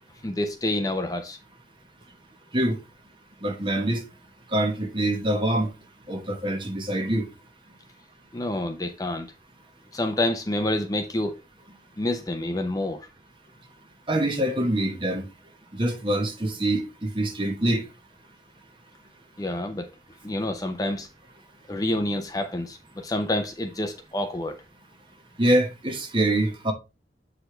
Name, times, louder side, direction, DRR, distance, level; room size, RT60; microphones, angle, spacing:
voice 1, 0.2-1.4 8.3-9.3 9.9-11.4 12.0-13.1 19.4-19.9 20.2-21.1 21.7-24.6, left 1 dB, 20° left, 0.5 m, -28 dB
voice 2, 3.4-4.0 4.5-5.7 6.1-7.2 14.1-15.2 15.7-17.8 25.4-26.7, right 1 dB, 30° right, 1.1 m, -24 dB
7.5 x 5.0 x 3.2 m
head